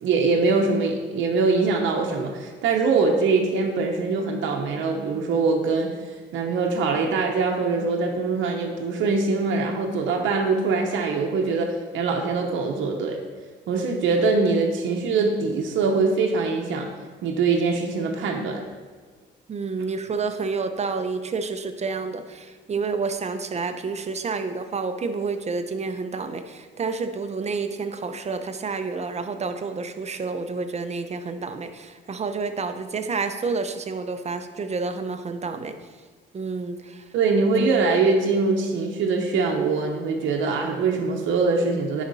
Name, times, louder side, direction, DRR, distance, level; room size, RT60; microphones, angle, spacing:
voice 1, 0.0-13.2 13.7-16.9 17.2-18.7 37.1-42.0, right 4 dB, 75° right, 1 dB, 0.9 m, -23 dB
voice 2, 19.5-35.7 36.3-37.0, right 4 dB, 35° right, 8 dB, 0.7 m, -29 dB
10.0 x 4.1 x 4.1 m, 1.5 s
cardioid pair, 90°, 20 cm